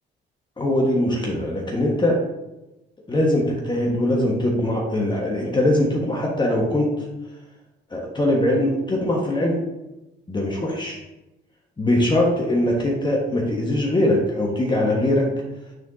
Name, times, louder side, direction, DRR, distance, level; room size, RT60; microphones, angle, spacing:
voice 1, 0.6-2.2 3.1-6.9 7.9-9.6 10.3-11.0 11.8-15.3, left 1 dB, 25° left, -2 dB, 1.3 m, -21 dB
9.1 x 4.4 x 2.7 m, 0.97 s
cardioid pair, 90°, 20 cm